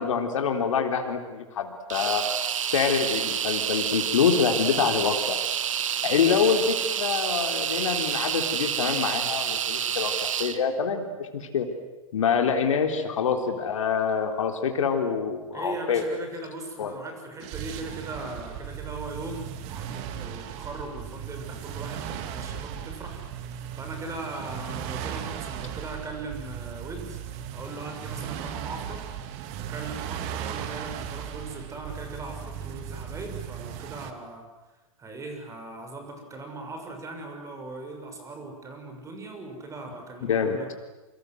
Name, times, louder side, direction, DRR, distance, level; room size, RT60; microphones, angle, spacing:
voice 1, 0.0-2.2 2.7-5.4 6.0-11.7 12.1-16.0 16.8-16.9 40.3-40.6, left 6 dB, 65° left, 5 dB, 3.7 m, -26 dB
sound 1, 1.9-10.6, right 9 dB, 65° right, 1.8 m, -28 dB
voice 2, 15.5-27.2 27.5-29.0 29.7-34.4 35.0-40.7, right 2 dB, 15° right, 4 dB, 6.6 m, -39 dB
sound 2, 17.4-34.1, right 9 dB, 40° right, 2.6 m, -37 dB
28.5 x 25.5 x 7.9 m, 1.1 s
figure-of-eight pair, 105°, 18 cm